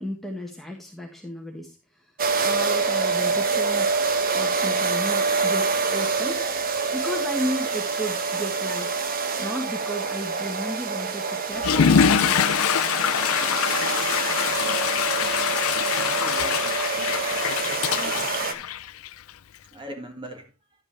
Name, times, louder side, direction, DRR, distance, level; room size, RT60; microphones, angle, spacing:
voice 1, 0.0-1.7 2.4-3.9 4.3-6.6 6.9-12.5, equal, ahead, 1.4 m, -33 dB
sound 1, 2.2-18.5, right 4 dB, 45° right, 1.2 m, -26 dB
Water / Toilet flush, 11.5-19.3, left 8 dB, 85° left, 0.4 m, -24 dB
voice 2, 16.1-16.6 17.7-18.6 19.7-20.4, right 1 dB, 25° right, 2.1 m, -40 dB
11.0 x 8.6 x 3.2 m
head